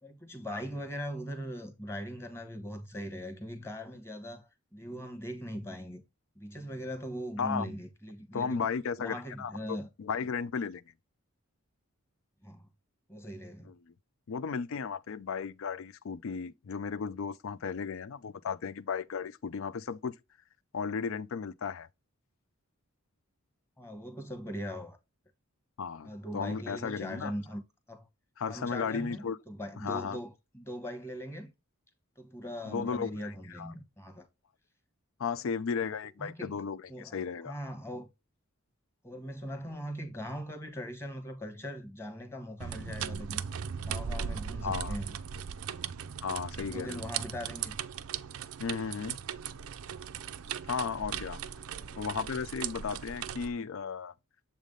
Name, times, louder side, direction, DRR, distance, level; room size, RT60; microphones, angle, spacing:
voice 1, 0.0-6.0 6.4-8.7 9.0-9.9 12.4-12.7 13.1-13.7 23.8-25.0 26.0-27.6 27.9-28.1 28.5-31.5 32.2-34.3 36.2-36.6 36.9-37.2 37.4-38.1 39.0-43.4 43.8-45.1 46.6-47.8 51.6-52.0, equal, 10° left, 1.1 m, -40 dB
voice 2, 7.4-7.7 8.3-10.8 13.6-13.9 14.3-20.1 20.7-21.9 25.8-27.3 28.4-29.4 29.8-30.2 32.7-33.7 35.2-37.6 44.6-45.0 46.2-47.1 48.6-49.2 50.6-51.4 52.0-54.1, left 6 dB, 65° left, 0.4 m, -35 dB
sound 1, 42.6-53.5, right 7 dB, 80° right, 0.5 m, -38 dB
7.3 x 3.4 x 3.7 m
head